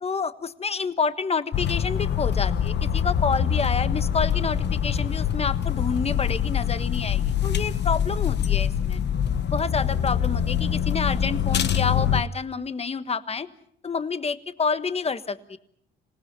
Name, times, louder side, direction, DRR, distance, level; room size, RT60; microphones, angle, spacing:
voice 1, 0.0-9.0 9.5-13.5 13.8-15.6, left 5 dB, 30° left, 12 dB, 1.3 m, -28 dB
sound 1, 1.5-12.2, left 9 dB, 60° left, 1.3 m, -24 dB
27.0 x 18.5 x 6.7 m, 0.67 s
cardioid pair, 90°, 20 cm